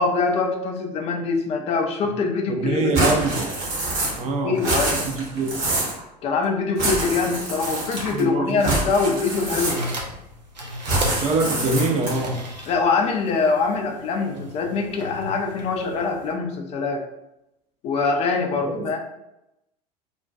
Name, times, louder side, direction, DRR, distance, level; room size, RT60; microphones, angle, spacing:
voice 1, 0.0-3.2 4.4-5.0 6.2-9.8 12.7-17.1 17.8-19.0, left 4 dB, 30° left, 4 dB, 0.4 m, -24 dB
voice 2, 2.5-3.5 4.2-4.5 5.3-5.6 8.1-8.8 11.2-12.4 18.7-19.0, right 3 dB, 30° right, 2 dB, 0.5 m, -24 dB
sound 1, 2.9-4.3 4.5-6.0 6.8-8.2 8.6-10.1 10.8-12.3, right 2 dB, 50° right, 0.9 m, -26 dB
sound 2, 9.5-16.3, right 1 dB, 85° right, 0.5 m, -35 dB
2.5 x 2.2 x 2.3 m, 0.87 s
figure-of-eight pair, 75°, 21 cm